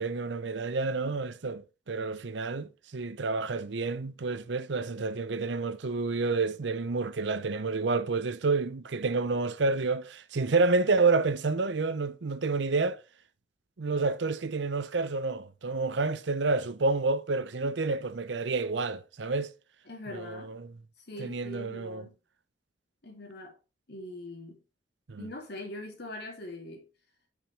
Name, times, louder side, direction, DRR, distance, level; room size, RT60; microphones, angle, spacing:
voice 1, 0.0-13.0 13.8-19.5 20.1-20.7 21.2-22.1 25.1-25.3, right 3 dB, 70° right, 0.7 m, -29 dB
voice 2, 19.9-20.5 21.1-22.1 23.0-23.5 23.9-24.6 25.2-26.9, left 1 dB, 60° left, 2.4 m, -42 dB
6.1 x 5.2 x 5.2 m
head